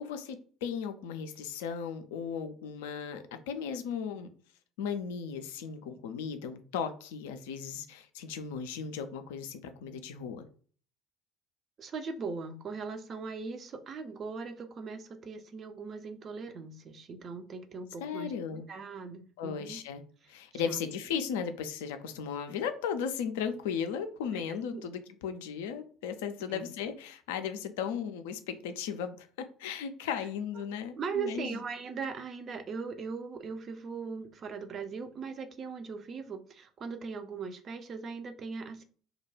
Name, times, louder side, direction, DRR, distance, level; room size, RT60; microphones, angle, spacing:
voice 1, 0.0-4.3 4.8-10.5 18.0-18.6 19.4-20.0 20.3-31.6, left 7 dB, 65° left, 9 dB, 0.3 m, -36 dB
voice 2, 11.8-19.8 20.7-20.8 24.3-24.4 24.7-24.8 26.5-26.7 30.6-30.7 31.0-38.8, right 5 dB, 40° right, 7 dB, 0.4 m, -39 dB
2.3 x 2.1 x 3.1 m, 0.43 s
figure-of-eight pair, 55°, 0 cm